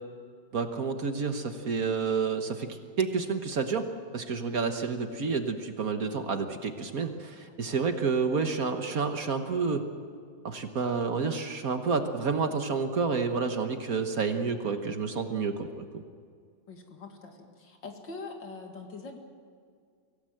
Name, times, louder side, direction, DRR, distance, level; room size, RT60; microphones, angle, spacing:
voice 1, 0.5-3.9 4.1-9.9 10.4-15.8, right 5 dB, 50° right, 7 dB, 1.5 m, -29 dB
voice 2, 7.4-7.8 16.7-19.2, left 3 dB, 70° left, 3 dB, 2.9 m, -44 dB
24.0 x 17.0 x 7.8 m, 2.2 s
omnidirectional pair, 2.1 m